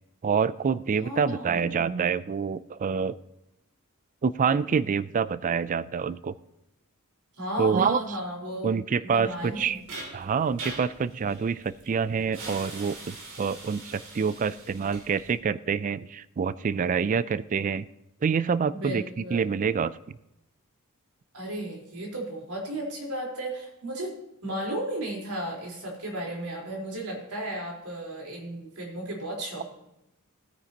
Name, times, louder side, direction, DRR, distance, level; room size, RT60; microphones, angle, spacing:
voice 1, 0.2-3.1 4.2-6.3 7.6-8.0 8.6-9.8 10.1-17.8 18.2-19.0 19.3-19.9, right 6 dB, 35° right, 18 dB, 0.3 m, -26 dB
voice 2, 1.0-1.7 7.4-8.8 9.0-9.8 18.7-19.5 21.3-24.1 24.4-29.6, right 1 dB, 85° right, -2 dB, 4.0 m, -34 dB
sound 1, 9.2-15.4, right 2 dB, 65° right, 3.0 m, -42 dB
17.0 x 9.4 x 2.9 m, 0.88 s
head